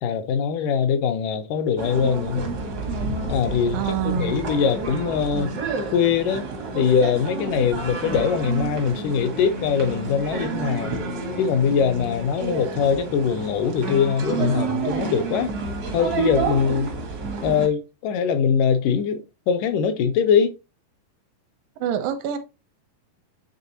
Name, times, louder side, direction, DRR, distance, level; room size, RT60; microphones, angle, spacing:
voice 1, 0.0-2.5 3.3-5.5 5.9-6.5 6.7-10.9 11.4-15.5 15.9-16.9 17.4-20.5, left 7 dB, 80° left, 2.2 m, -22 dB
sound 1, 1.8-17.7, right 4 dB, 70° right, 0.9 m, -30 dB
voice 2, 3.7-4.4 16.6-16.7 21.8-22.4, right 10 dB, 85° right, 2.6 m, -26 dB
9.3 x 3.5 x 2.8 m
omnidirectional pair, 3.9 m